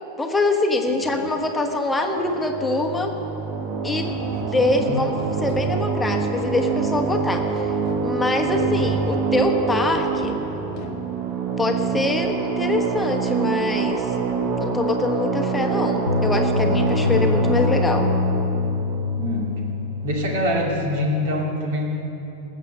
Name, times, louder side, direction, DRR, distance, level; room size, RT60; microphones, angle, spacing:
voice 1, 0.2-3.1 3.8-5.1 5.4-7.4 8.0-10.3 11.6-14.1 14.6-18.1, left 2 dB, 10° left, 3 dB, 1.3 m, -24 dB
sound 1, 2.1-20.2, right 5 dB, 35° right, 1.2 m, -26 dB
sound 2, 4.0-11.0, left 5 dB, 40° left, 1.1 m, -41 dB
voice 2, 4.5-5.0 19.2-19.5 20.0-21.9, equal, 55° right, 0 dB, 2.4 m, -25 dB
sound 3, 16.1-21.1, left 5 dB, 80° left, 0.5 m, -24 dB
19.0 x 7.5 x 6.7 m, 2.9 s
figure-of-eight pair, 90°, 0 cm